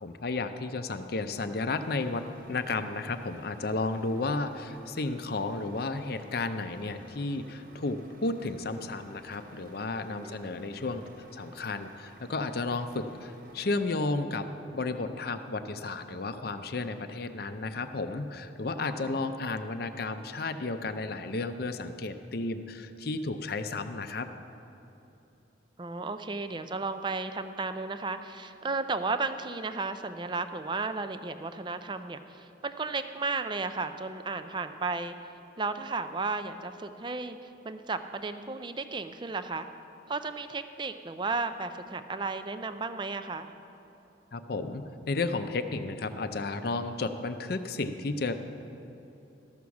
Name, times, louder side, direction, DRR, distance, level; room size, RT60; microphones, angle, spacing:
voice 1, 0.0-11.0 11.3-24.3 44.3-48.3, left 3 dB, 50° left, 9 dB, 0.5 m, -33 dB
Truck, 1.8-13.8, right 2 dB, 45° right, 0.8 m, -55 dB
voice 2, 18.8-19.2 25.8-35.2 35.6-37.4 37.6-39.7 40.1-43.5, right 3 dB, 25° right, 10 dB, 0.4 m, -34 dB
13.5 x 6.3 x 7.1 m, 3.0 s
head